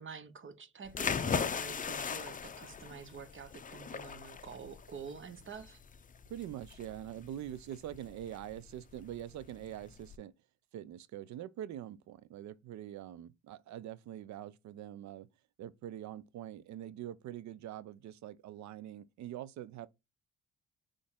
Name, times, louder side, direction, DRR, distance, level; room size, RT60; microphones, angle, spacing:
voice 1, 0.0-5.8, right 5 dB, 40° right, 0.9 m, -47 dB
sound 1, 0.9-10.2, left 6 dB, 25° left, 0.5 m, -39 dB
voice 2, 6.3-10.3 10.7-15.3 15.6-19.9, right 11 dB, 65° right, 0.6 m, -44 dB
4.1 x 3.3 x 3.6 m
supercardioid pair, 60°, 31 cm